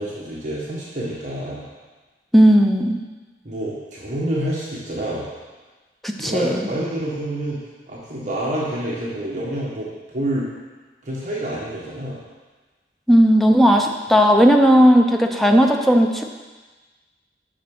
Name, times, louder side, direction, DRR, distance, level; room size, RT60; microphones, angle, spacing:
voice 1, 0.0-1.7 3.4-5.3 6.2-7.6 7.9-10.5 11.0-12.2, right 1 dB, 45° right, -6 dB, 1.7 m, -27 dB
voice 2, 2.3-3.0 6.0-6.7 13.1-16.2, equal, ahead, 2 dB, 0.7 m, -15 dB
7.3 x 6.0 x 6.2 m, 1.3 s
head